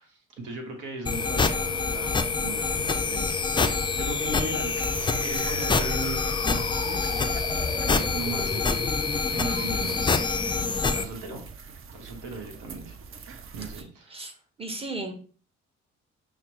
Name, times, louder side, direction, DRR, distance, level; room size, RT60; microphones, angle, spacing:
voice 1, 0.0-4.7 5.0-9.0 9.3-11.5 11.9-12.9 13.5-14.3, right 2 dB, 65° right, 2 dB, 1.0 m, -38 dB
sound 1, 1.1-11.0, left 4 dB, 15° left, 0.4 m, -26 dB
sound 2, 4.6-13.8, right 5 dB, 40° right, 0.6 m, -42 dB
voice 2, 14.6-15.1, right 2 dB, 15° right, 5 dB, 0.9 m, -35 dB
5.8 x 2.0 x 2.9 m, 0.43 s
hypercardioid pair, 50°, 33 cm